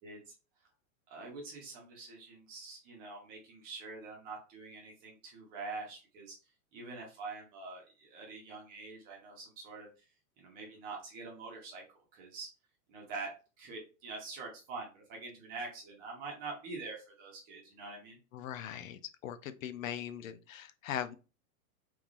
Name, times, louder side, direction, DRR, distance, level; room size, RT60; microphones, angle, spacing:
voice 1, 0.0-0.3 1.1-6.3 6.7-9.9 10.4-11.8 12.1-12.5 12.9-13.3 13.6-18.2, right 3 dB, 20° right, 0.9 m, -45 dB
voice 2, 18.3-21.1, left 10 dB, 65° left, 0.5 m, -40 dB
3.5 x 3.0 x 2.4 m
supercardioid pair, 175°, 44 cm